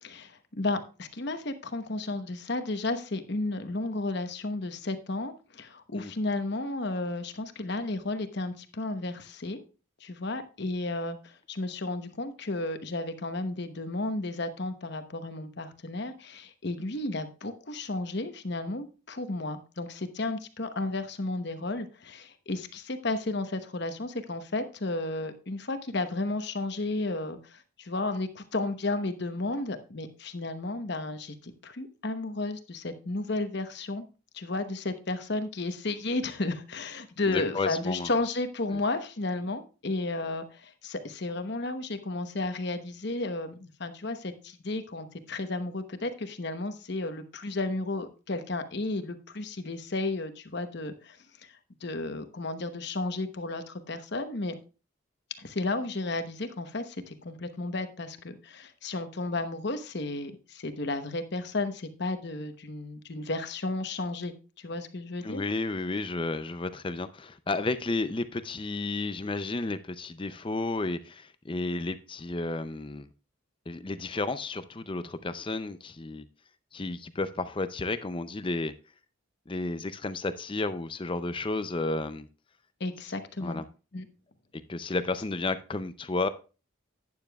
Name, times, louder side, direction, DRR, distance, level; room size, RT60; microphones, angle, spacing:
voice 1, 0.0-9.6 10.0-34.1 34.3-51.2 51.4-51.5 51.8-54.6 55.4-65.4 82.8-83.6 83.9-84.1, left 2 dB, 50° left, 9 dB, 1.0 m, -33 dB
voice 2, 37.2-38.1 65.2-73.1 73.7-76.2 76.7-78.7 79.5-82.3 83.4-83.7 84.7-86.3, left 3 dB, 25° left, 12 dB, 0.5 m, -32 dB
12.0 x 9.6 x 2.3 m, 0.33 s
head